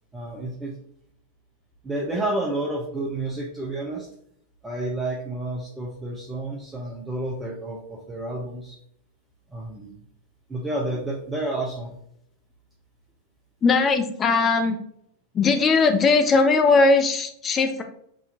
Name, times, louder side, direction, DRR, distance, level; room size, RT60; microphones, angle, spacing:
voice 1, 0.1-0.8 1.8-4.1 4.6-8.8 9.5-9.9 10.5-12.0, right 2 dB, 10° right, -3 dB, 0.8 m, -30 dB
voice 2, 13.6-14.8 15.3-17.8, left 4 dB, 25° left, 6 dB, 0.5 m, -19 dB
6.2 x 2.8 x 2.8 m, 0.71 s
figure-of-eight pair, 90°, 0 cm